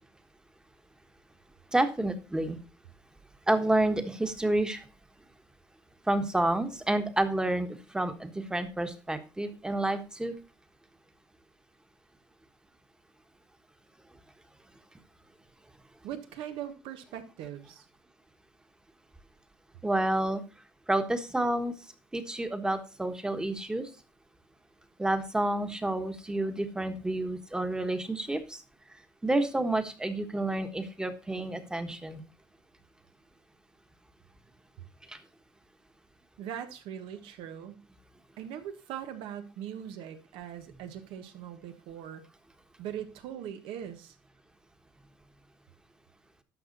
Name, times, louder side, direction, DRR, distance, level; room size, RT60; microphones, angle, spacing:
voice 1, 1.7-2.6 3.5-4.8 6.1-10.3 19.8-20.4 20.9-21.7 22.1-23.9 25.0-28.6 29.2-32.2 35.1-35.2, right 1 dB, 10° right, 8 dB, 1.4 m, -29 dB
voice 2, 16.0-17.8 36.4-37.8 38.4-42.2 42.8-44.2, right 10 dB, 75° right, 8 dB, 1.5 m, -41 dB
11.5 x 6.1 x 4.1 m, 0.32 s
cardioid pair, 105°, 9 cm